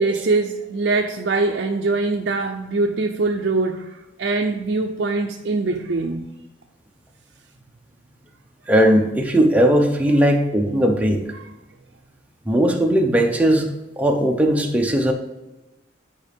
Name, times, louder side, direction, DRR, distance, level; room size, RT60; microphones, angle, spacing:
voice 1, 0.0-6.3 11.4-11.5, right 3 dB, 60° right, 3 dB, 0.5 m, -23 dB
voice 2, 8.7-11.2 12.5-13.7 14.0-15.1, right 1 dB, 10° right, 2 dB, 0.8 m, -18 dB
9.2 x 5.0 x 3.5 m, 1.0 s
head